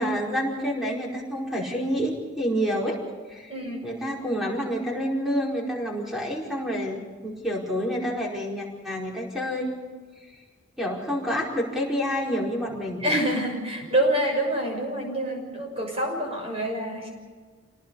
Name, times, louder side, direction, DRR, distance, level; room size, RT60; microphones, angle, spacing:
voice 1, 0.0-3.0 3.3-3.5 3.8-9.7 10.8-13.2, equal, ahead, -3 dB, 4.9 m, -28 dB
voice 2, 3.5-3.9 13.0-17.1, right 1 dB, 30° right, 1 dB, 6.5 m, -26 dB
28.0 x 19.0 x 5.5 m, 1.5 s
head